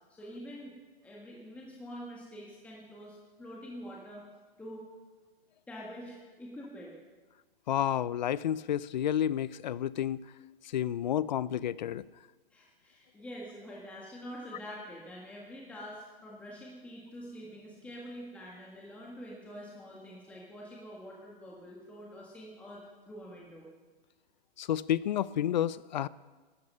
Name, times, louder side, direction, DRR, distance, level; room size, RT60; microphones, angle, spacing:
voice 1, 0.1-0.7 1.0-4.2 4.6-4.8 5.7-6.9 12.5-22.8 23.1-23.7, equal, 5° left, -4 dB, 1.7 m, -46 dB
voice 2, 7.7-10.2 10.7-12.0 24.6-26.1, left 10 dB, 50° left, 20 dB, 0.5 m, -30 dB
17.0 x 13.0 x 5.5 m, 1.3 s
hypercardioid pair, 160°, 30 cm